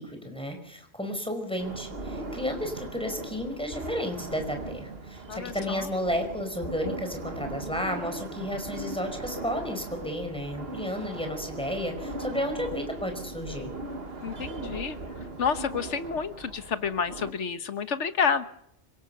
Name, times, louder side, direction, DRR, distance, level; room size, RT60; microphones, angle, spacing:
voice 1, 0.0-13.7, equal, 5° left, 5 dB, 4.9 m, -32 dB
sound 1, 1.6-17.3, right 2 dB, 50° right, 2.0 m, -39 dB
voice 2, 5.3-5.9 14.2-15.0 15.4-18.4, left 6 dB, 70° left, 11 dB, 1.5 m, -29 dB
26.0 x 17.5 x 6.8 m, 0.73 s
omnidirectional pair, 1.3 m